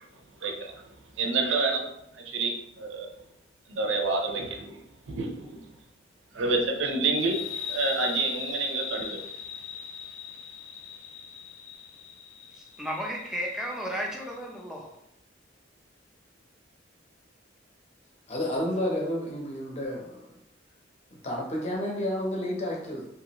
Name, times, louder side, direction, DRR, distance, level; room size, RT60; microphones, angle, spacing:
voice 1, 0.4-0.7 1.2-1.8 2.1-3.1 3.7-4.7 5.1-5.6 6.3-7.4 7.7-9.2, right 3 dB, 75° right, 2 dB, 0.6 m, -28 dB
sound 1, 7.2-14.4, left 8 dB, 80° left, 0.4 m, -39 dB
voice 2, 12.8-14.9, equal, 5° right, -2 dB, 0.5 m, -33 dB
voice 3, 18.3-20.2 21.2-23.1, left 1 dB, 35° left, -1 dB, 0.7 m, -30 dB
2.9 x 2.4 x 2.9 m, 0.80 s
head